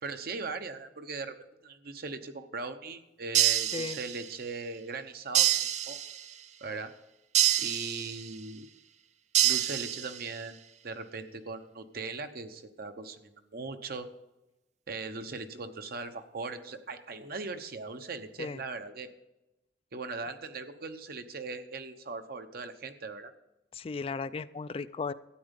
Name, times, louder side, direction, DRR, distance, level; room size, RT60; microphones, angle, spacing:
voice 1, 0.0-1.3 1.6-6.0 6.6-6.9 7.6-8.7 9.4-10.6 10.8-14.1 14.9-19.1 19.9-23.3, right 4 dB, 60° right, 8 dB, 0.9 m, -39 dB
sound 1, 3.3-4.4 5.3-6.4 7.3-8.4 9.3-10.4, right 12 dB, 40° right, 0.5 m, -27 dB
voice 2, 23.7-25.1, left 4 dB, 35° left, 14 dB, 0.3 m, -35 dB
13.0 x 9.1 x 5.3 m, 0.98 s
head